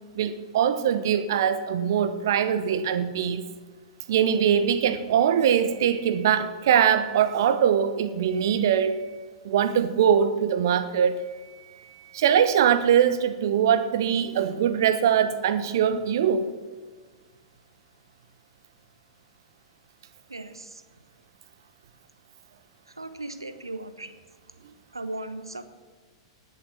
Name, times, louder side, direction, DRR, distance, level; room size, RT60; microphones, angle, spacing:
voice 1, 0.1-3.4 4.1-9.0 9.4-11.2 12.1-16.5, right 8 dB, 55° right, 12 dB, 1.0 m, -22 dB
voice 2, 20.3-20.8 22.9-24.2 24.9-25.6, right 2 dB, 80° right, 10 dB, 1.0 m, -37 dB
19.0 x 6.8 x 6.1 m, 1.5 s
figure-of-eight pair, 100°, 2 cm